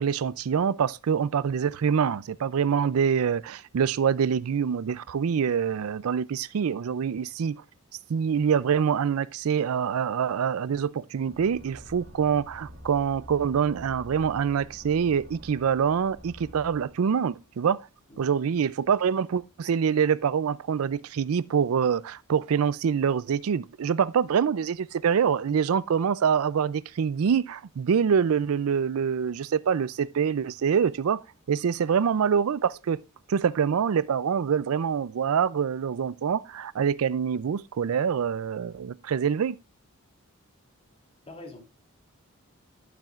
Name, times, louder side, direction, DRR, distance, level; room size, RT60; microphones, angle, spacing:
voice 1, 0.0-7.6 8.1-17.8 18.2-31.2 31.5-33.0 33.3-39.6, right 7 dB, 70° right, 0.4 m, -25 dB
sound 1, 11.3-17.8, equal, 55° right, 2.0 m, -47 dB
voice 2, 41.3-41.6, left 2 dB, 30° left, 2.8 m, -45 dB
12.0 x 7.4 x 2.4 m
head